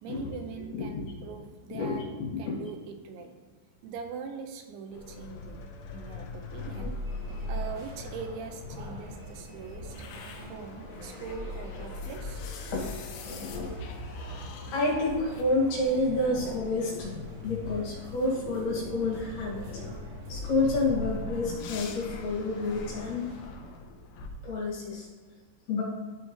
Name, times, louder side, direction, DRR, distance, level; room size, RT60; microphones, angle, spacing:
voice 1, 0.0-2.1 2.4-3.3 3.8-7.0 7.5-10.0 10.5-12.4, right 5 dB, 85° right, 5 dB, 2.9 m, -42 dB
voice 2, 0.7-1.1 1.7-2.0 2.3-2.6 12.7-12.9 13.2-13.7 14.7-17.2 17.4-19.6 20.3-23.3 24.4-25.1 25.7-25.8, left 2 dB, 70° left, -5 dB, 4.1 m, -29 dB
sound 1, 4.9-24.3, left 2 dB, 85° left, 2.2 m, -40 dB
sound 2, 6.5-23.5, right 2 dB, 65° right, 3.6 m, -49 dB
13.5 x 4.8 x 3.1 m, 1.4 s
omnidirectional pair, 5.4 m